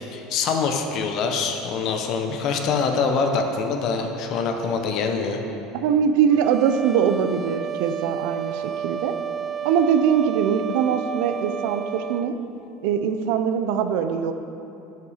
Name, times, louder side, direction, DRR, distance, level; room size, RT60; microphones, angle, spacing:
voice 1, 0.0-5.4, left 5 dB, 45° left, 4 dB, 0.8 m, -24 dB
voice 2, 5.7-9.2 9.6-12.4 12.8-14.3, right 7 dB, 70° right, 9 dB, 0.6 m, -22 dB
sound 1, 6.3-12.3, right 9 dB, 20° right, 0.3 m, -32 dB
9.2 x 5.9 x 6.4 m, 2.8 s
cardioid pair, 155°, 0 cm